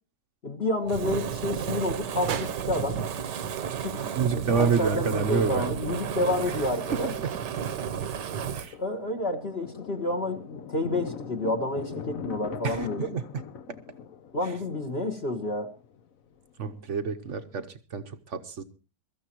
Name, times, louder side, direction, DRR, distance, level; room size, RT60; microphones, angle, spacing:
voice 1, 0.4-3.0 3.8-4.1 4.3-7.1 8.8-13.1 14.3-15.7, left 1 dB, 35° left, 6 dB, 1.4 m, -29 dB
Fire, 0.9-8.7, right 8 dB, 70° right, 1.5 m, -32 dB
sound 1, 2.2-4.3 4.6-4.7 6.9-7.9, right 8 dB, 85° right, 1.7 m, -40 dB
Thunder, 3.6-3.7 3.9-4.0 4.4-4.7 5.1-17.5, left 7 dB, 55° left, 1.1 m, -43 dB
voice 2, 4.2-5.7 6.4-6.6 6.9-7.3 8.5-8.8 12.6-13.2 13.7-13.8 16.6-18.6, right 5 dB, 50° right, 8 dB, 1.0 m, -29 dB
23.0 x 14.0 x 3.0 m, 0.31 s
omnidirectional pair, 1.9 m